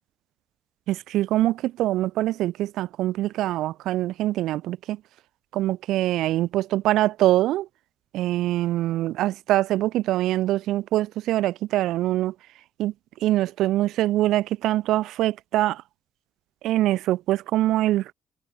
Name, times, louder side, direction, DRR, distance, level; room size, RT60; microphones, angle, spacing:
voice 1, 0.9-5.0 5.5-7.7 8.1-12.3 12.8-12.9 13.2-15.8 16.6-18.1, right 15 dB, 90° right, 0.6 m, -24 dB
cardioid pair, 90°, 0 cm